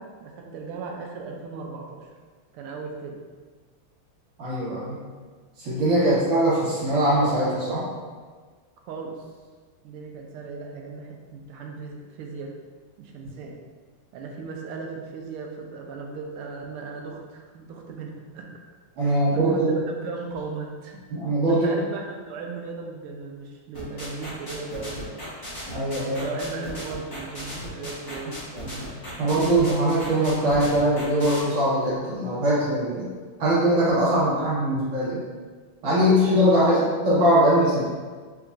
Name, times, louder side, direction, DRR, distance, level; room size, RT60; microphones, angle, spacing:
voice 1, 0.0-2.1 2.5-3.2 8.9-9.2 9.8-12.5 13.0-13.6 14.1-18.5 19.0-21.0 21.5-25.2 26.1-28.3 36.3-36.9, right 4 dB, 85° right, 1 dB, 1.5 m, -37 dB
voice 2, 4.4-5.0 5.6-7.9 13.2-13.3 19.0-19.7 21.1-21.7 25.7-26.2 28.5-28.8 29.2-33.1 33.4-35.2 35.8-36.8 37.0-37.9, right 1 dB, 70° right, -9 dB, 2.2 m, -21 dB
sound 1, 23.7-31.4, equal, 20° left, 0.5 m, -37 dB
4.5 x 3.3 x 2.5 m, 1.5 s
omnidirectional pair, 2.4 m